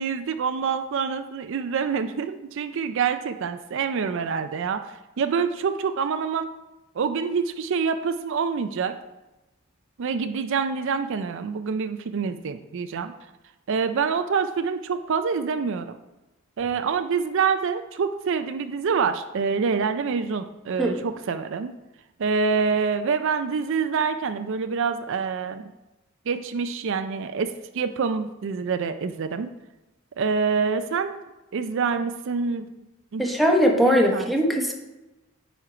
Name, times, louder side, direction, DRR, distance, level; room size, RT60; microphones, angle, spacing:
voice 1, 0.0-6.5 7.0-8.9 10.0-13.1 13.7-16.0 16.6-21.7 22.2-25.7 26.3-29.5 30.2-31.2 31.5-32.7 33.1-33.2 33.8-34.3, right 5 dB, 60° right, 9 dB, 0.4 m, -26 dB
voice 2, 33.2-34.7, equal, ahead, 1 dB, 1.0 m, -20 dB
9.3 x 4.4 x 4.9 m, 1.0 s
head